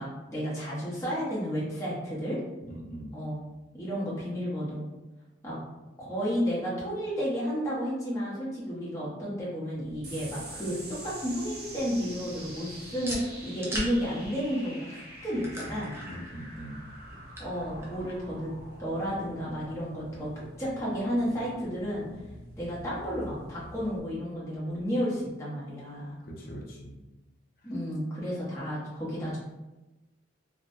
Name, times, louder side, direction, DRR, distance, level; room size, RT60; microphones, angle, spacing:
voice 1, 0.0-2.4 3.1-3.4 3.7-4.9 5.4-5.6 6.0-15.9 17.4-18.5 18.8-20.3 20.6-22.1 22.6-26.1 27.6-29.4, equal, 15° left, -8 dB, 0.7 m, -32 dB
voice 2, 2.7-3.2 16.1-16.9 26.2-27.0, equal, 50° left, -2 dB, 0.6 m, -41 dB
sound 1, 9.7-24.0, equal, 15° right, 0.4 m, -44 dB
sound 2, 10.0-24.8, right 2 dB, 55° right, 0.8 m, -47 dB
2.9 x 2.0 x 2.6 m, 1.0 s
head